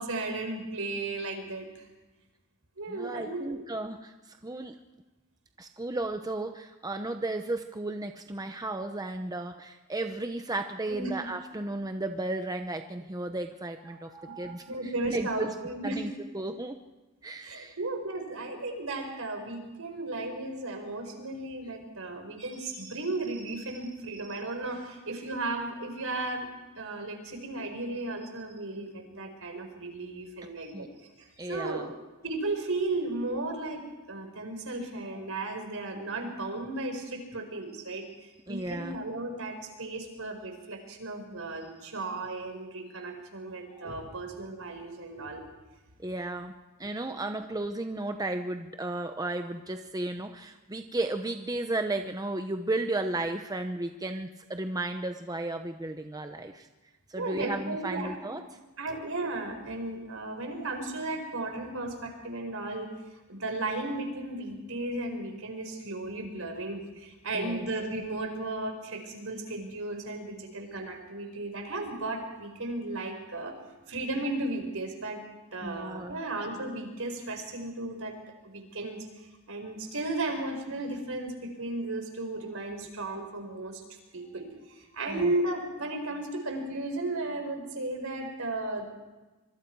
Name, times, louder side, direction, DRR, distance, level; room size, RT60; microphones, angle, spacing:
voice 1, 0.0-1.9 2.8-3.6 10.9-11.1 13.8-16.0 17.4-26.5 26.7-31.9 32.2-45.4 47.1-47.2 57.1-58.3 58.8-62.9 63.3-73.5 73.9-75.2 75.5-78.2 78.4-83.8 84.1-88.9, right 2 dB, 70° right, 5 dB, 5.0 m, -35 dB
voice 2, 2.9-4.8 5.6-14.1 14.4-14.6 15.1-15.5 15.8-16.8 17.2-17.8 30.7-30.9 31.4-31.9 38.5-39.0 46.0-46.5 46.8-56.7 57.1-58.4 67.3-67.7 75.6-76.2 85.1-85.3, right 2 dB, 15° right, 6 dB, 0.8 m, -34 dB
25.5 x 24.0 x 4.7 m, 1.1 s
head